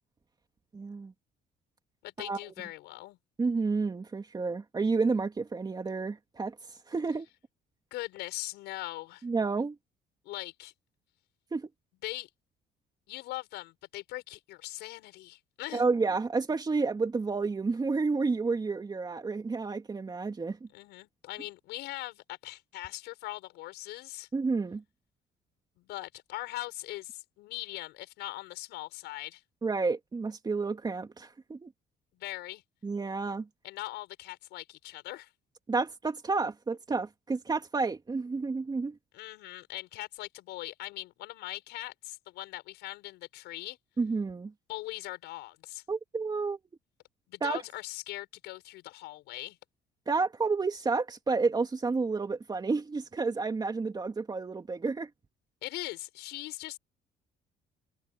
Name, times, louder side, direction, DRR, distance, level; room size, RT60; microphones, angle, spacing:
voice 1, 0.7-1.1 2.2-2.4 3.4-6.5 6.9-7.3 9.2-9.7 11.5-11.7 15.7-20.6 24.3-24.8 29.6-31.7 32.8-33.5 35.7-39.0 44.0-44.5 45.9-46.6 47.4-47.6 50.1-55.1, right 4 dB, 25° right, 2.9 m, -30 dB
voice 2, 2.0-3.2 7.9-9.2 10.2-10.7 12.0-12.3 13.1-15.8 20.7-24.3 25.8-29.4 32.1-32.6 33.6-35.3 39.1-43.8 44.7-45.8 47.3-49.6 55.6-56.8, left 18 dB, 85° left, 7.2 m, -41 dB
cardioid pair, 110°, 17 cm